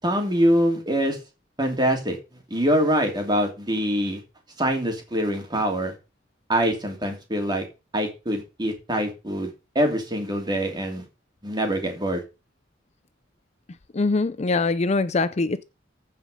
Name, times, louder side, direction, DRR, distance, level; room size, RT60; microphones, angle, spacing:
voice 1, 0.0-1.2 1.6-2.2 2.5-4.2 4.6-5.9 6.5-7.6 7.9-11.0 11.4-12.2, equal, 25° right, 2.8 m, -24 dB
voice 2, 13.9-15.6, left 3 dB, 35° left, 0.5 m, -23 dB
15.0 x 5.1 x 5.2 m
head